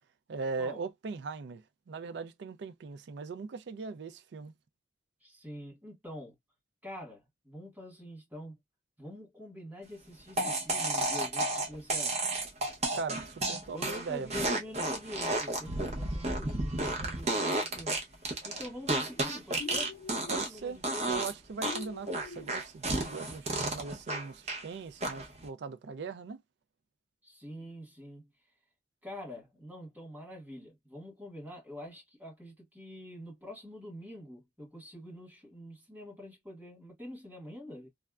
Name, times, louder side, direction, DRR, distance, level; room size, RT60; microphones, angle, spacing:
voice 1, 0.3-1.6 1.9-4.5 12.9-14.3 20.3-20.8 21.1-26.4, right 4 dB, 60° right, 0.4 m, -39 dB
voice 2, 5.2-6.3 6.8-8.6 9.0-12.3 13.7-21.1 27.2-28.3 29.0-37.9, left 1 dB, 10° right, 1.6 m, -46 dB
sound 1, 10.4-20.6 20.8-21.3 21.6-24.6 25.0-25.4, right 2 dB, 35° right, 0.8 m, -32 dB
sound 2, 19.5-20.5 21.6-22.5, left 5 dB, 60° left, 0.4 m, -44 dB
3.3 x 2.1 x 2.3 m
head